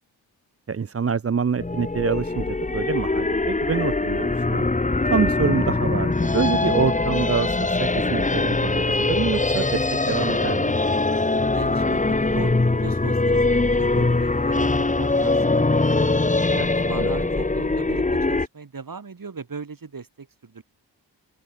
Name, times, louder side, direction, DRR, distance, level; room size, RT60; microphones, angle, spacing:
voice 1, 0.7-4.7 5.1-10.8 16.5-17.3, right 6 dB, 30° right, 0.7 m, -26 dB
sound 1, 1.6-18.5, left 2 dB, 15° left, 1.2 m, -22 dB
sound 2, 7.4-14.6, left 3 dB, 40° left, 6.8 m, -54 dB
voice 2, 11.5-16.1 16.7-20.6, right 5 dB, 45° right, 3.2 m, -38 dB
open air
cardioid pair, 45°, 45 cm